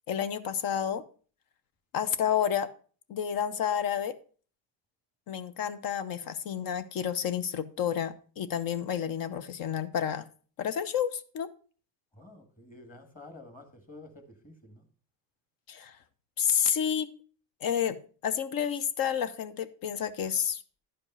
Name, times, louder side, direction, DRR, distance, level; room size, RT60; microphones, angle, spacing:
voice 1, 0.1-1.0 1.9-2.7 3.1-4.2 5.3-10.3 10.6-11.5 15.7-16.0 16.4-17.1 17.6-18.0 18.2-20.6, left 8 dB, 50° left, 13 dB, 0.8 m, -30 dB
voice 2, 12.1-14.8, left 2 dB, 20° left, 7 dB, 1.6 m, -50 dB
11.0 x 5.2 x 5.4 m, 0.41 s
cardioid pair, 140°, 44 cm